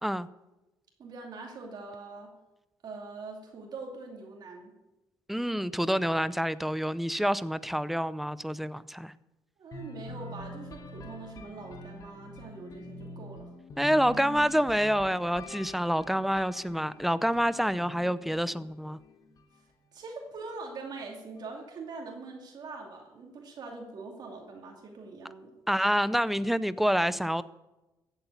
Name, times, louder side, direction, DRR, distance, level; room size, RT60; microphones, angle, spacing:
voice 1, 1.0-2.3 2.8-4.7 9.6-13.5 19.9-25.6, right 3 dB, 55° right, 1 dB, 2.6 m, -43 dB
voice 2, 5.3-9.1 13.8-19.0 25.7-27.4, equal, ahead, 16 dB, 0.6 m, -27 dB
sound 1, 9.7-19.5, left 1 dB, 45° left, 2.2 m, -46 dB
15.0 x 8.2 x 8.4 m, 1.0 s
cardioid pair, 105°, 8 cm